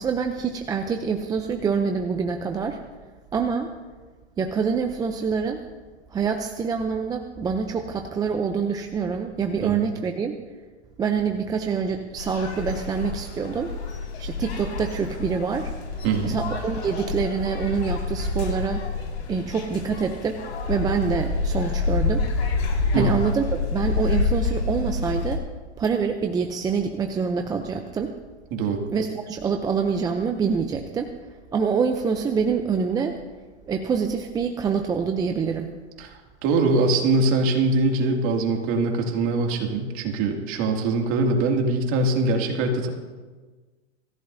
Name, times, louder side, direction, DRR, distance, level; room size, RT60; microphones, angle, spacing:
voice 1, 0.0-2.8 3.3-3.7 4.4-5.6 6.1-10.4 11.0-13.7 14.2-15.7 16.2-18.9 19.3-20.4 20.7-22.3 22.9-25.4 25.8-28.2 28.9-31.1 31.5-33.2 33.7-35.7, right 6 dB, 10° right, 5 dB, 0.5 m, -26 dB
sound 1, 12.2-25.4, left 4 dB, 65° left, 5.2 m, -28 dB
voice 2, 16.0-16.4 22.9-23.1 28.5-28.8 36.0-42.9, right 3 dB, 40° right, 1 dB, 2.5 m, -23 dB
25.0 x 15.0 x 2.7 m, 1.3 s
hypercardioid pair, 130°, 34 cm